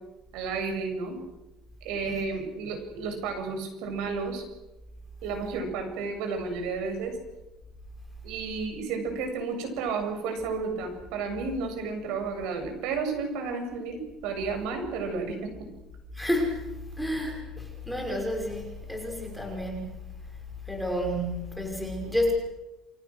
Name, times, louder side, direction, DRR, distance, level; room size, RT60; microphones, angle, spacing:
voice 1, 0.3-1.2 1.8-4.4 5.2-7.2 8.2-15.7, right 4 dB, 80° right, 6 dB, 7.7 m, -32 dB
voice 2, 16.1-16.6 17.0-19.9 20.7-22.3, equal, ahead, 1 dB, 5.6 m, -30 dB
29.0 x 24.0 x 6.5 m, 0.99 s
cardioid pair, 150°, 0 cm